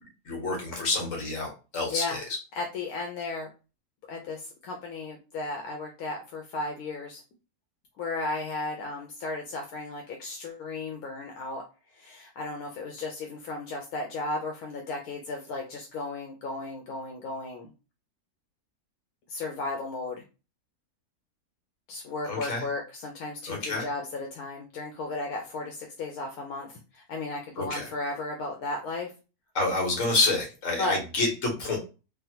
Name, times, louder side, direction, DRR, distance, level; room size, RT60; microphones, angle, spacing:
voice 1, 0.2-2.2 22.2-22.6 23.5-23.9 27.6-27.9 29.5-31.8, left 3 dB, 60° left, 0 dB, 1.5 m, -28 dB
voice 2, 2.5-3.5 4.1-7.2 8.0-11.6 11.9-17.7 19.3-20.2 21.9-29.1 30.8-31.0, left 3 dB, 80° left, 2 dB, 1.1 m, -35 dB
3.3 x 2.1 x 2.8 m, 0.31 s
omnidirectional pair, 1.6 m